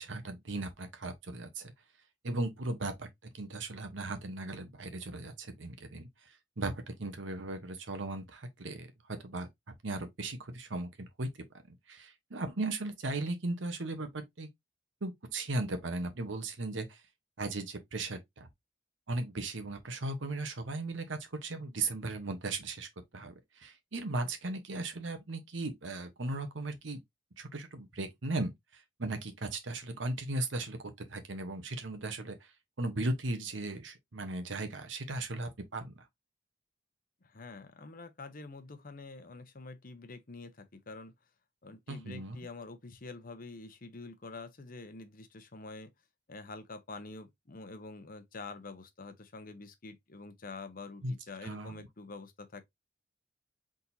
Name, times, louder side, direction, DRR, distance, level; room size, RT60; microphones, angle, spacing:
voice 1, 0.0-1.7 2.2-3.1 3.3-6.1 6.6-9.5 9.8-11.3 11.7-14.5 15.0-17.0 17.4-18.5 19.1-27.0 27.4-30.8 31.1-32.4 32.8-36.0 41.9-42.4 51.0-51.1 51.4-51.9, right 2 dB, 80° right, 1.0 m, -37 dB
voice 2, 37.2-41.1 41.6-45.9 46.3-52.6, left 3 dB, 50° left, 0.9 m, -47 dB
4.3 x 3.7 x 2.7 m
head